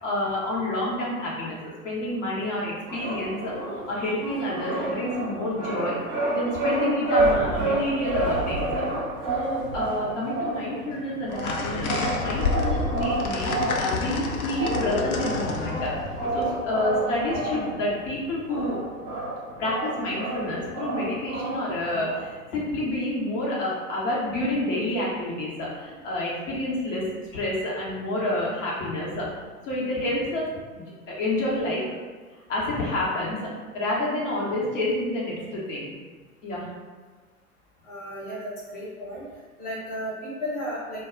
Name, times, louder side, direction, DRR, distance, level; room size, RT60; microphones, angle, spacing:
voice 1, 0.0-3.5 3.9-8.8 9.3-15.9 16.3-18.8 19.6-29.3 29.6-31.9 32.5-33.4 33.7-35.9 36.4-36.7, left 1 dB, 55° left, -5 dB, 0.9 m, -29 dB
sound 1, 2.9-22.3, right 2 dB, 10° right, 0.4 m, -30 dB
sound 2, 11.3-17.4, left 3 dB, 75° left, 0.5 m, -29 dB
voice 2, 37.9-39.2 39.6-41.0, equal, 15° left, -8 dB, 0.8 m, -34 dB
2.2 x 2.0 x 3.6 m, 1.4 s
figure-of-eight pair, 100°, 44 cm